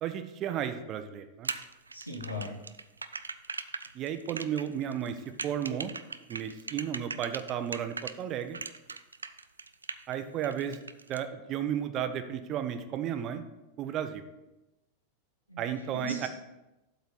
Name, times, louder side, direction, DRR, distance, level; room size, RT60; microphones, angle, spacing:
voice 1, 0.0-1.5 3.9-5.9 6.3-8.6 10.1-10.8 11.1-13.4 13.8-14.2 15.6-16.3, right 9 dB, 35° right, 9 dB, 0.7 m, -33 dB
sound 1, 1.4-8.2 8.5-10.1 10.4-11.2, right 4 dB, 75° right, 0.3 m, -39 dB
voice 2, 1.9-2.5 15.5-15.6 15.9-16.3, right 1 dB, 90° left, 0 dB, 1.6 m, -37 dB
7.9 x 4.1 x 6.5 m, 0.98 s
figure-of-eight pair, 90°, 0 cm